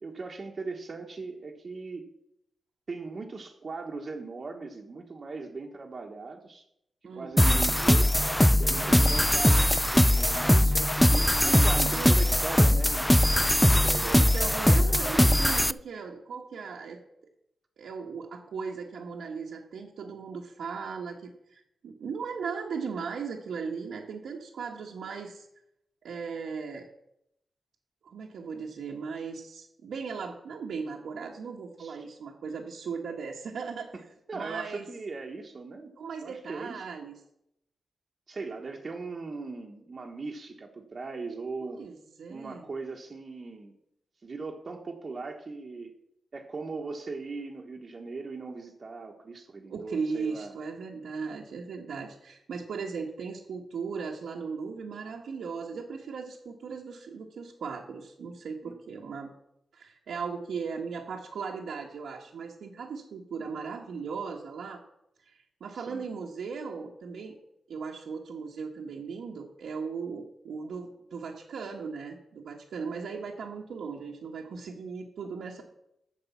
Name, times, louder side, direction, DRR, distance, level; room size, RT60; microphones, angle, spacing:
voice 1, 0.0-2.1 2.9-6.7 7.1-8.1 8.6-13.1 13.4-14.3 31.8-32.0 34.3-35.9 36.2-36.9 38.3-41.8 42.3-43.8 44.2-45.9 46.3-50.5 58.6-59.0 65.7-66.1, right 3 dB, 45° right, 1 dB, 1.1 m, -39 dB
voice 2, 7.0-7.7 8.7-9.2 11.1-12.5 14.1-17.0 17.8-25.5 26.0-26.9 28.0-33.9 34.3-34.8 36.0-37.2 41.6-42.6 49.7-59.3 59.7-64.8 65.2-67.4 67.7-75.6, right 5 dB, 85° right, -2 dB, 1.2 m, -37 dB
sound 1, 7.4-15.7, left 1 dB, 5° left, 0.3 m, -21 dB
9.6 x 6.7 x 7.1 m, 0.80 s
cardioid pair, 90°, 0 cm